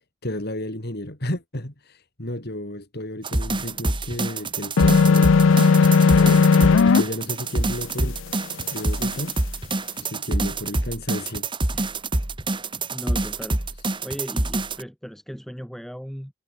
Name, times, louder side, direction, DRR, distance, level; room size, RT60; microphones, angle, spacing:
voice 1, 0.0-5.4 6.1-8.3 8.7-9.4 10.0-11.5, left 1 dB, 50° left, 3.5 m, -32 dB
sound 1, 3.2-14.8, right 2 dB, 25° right, 1.7 m, -26 dB
sound 2, 4.8-7.0, left 5 dB, 65° left, 0.5 m, -15 dB
voice 2, 12.9-13.6 14.0-16.3, equal, ahead, 6.6 m, -37 dB
head